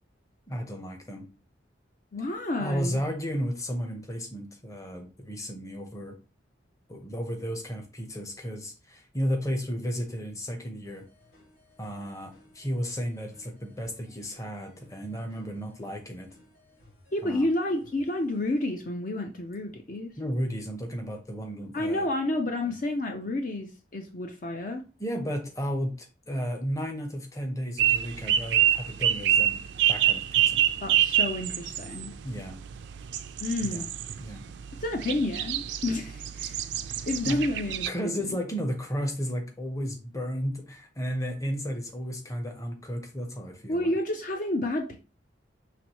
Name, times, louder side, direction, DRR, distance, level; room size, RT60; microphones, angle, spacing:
voice 1, 0.5-1.3 2.6-6.1 6.9-11.0 11.8-16.3 17.2-17.5 20.2-22.1 22.6-22.7 25.0-25.9 26.3-29.6 29.9-30.6 32.2-32.6 33.6-33.9 34.2-34.4 36.4-36.5 36.9-37.4 37.9-44.0, equal, 15° left, 4 dB, 0.8 m, -33 dB
voice 2, 2.1-3.0 17.1-20.1 21.7-24.8 30.8-32.1 33.4-33.9 34.7-36.6 37.1-38.4 43.7-45.0, left 1 dB, 45° left, 4 dB, 0.5 m, -30 dB
sound 1, 10.8-18.7, left 1 dB, 75° left, 2.4 m, -59 dB
sound 2, 27.8-37.9, right 11 dB, 70° right, 0.4 m, -27 dB
5.8 x 3.1 x 2.9 m, 0.33 s
head